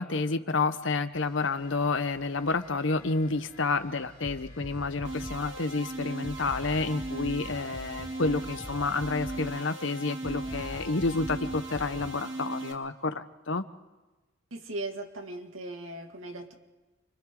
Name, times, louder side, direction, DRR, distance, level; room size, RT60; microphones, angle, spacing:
voice 1, 0.0-13.6, left 3 dB, 70° left, 11 dB, 1.0 m, -29 dB
sound 1, 1.1-9.0 9.3-10.8, left 2 dB, 45° left, 4.6 m, -54 dB
sound 2, 4.2-5.5 6.2-12.2, equal, 10° left, 2.2 m, -43 dB
sound 3, 5.0-12.7, right 2 dB, 60° right, 3.1 m, -38 dB
voice 2, 14.5-16.5, right 2 dB, 90° right, 3 dB, 2.3 m, -38 dB
29.5 x 24.5 x 3.9 m, 1.1 s
head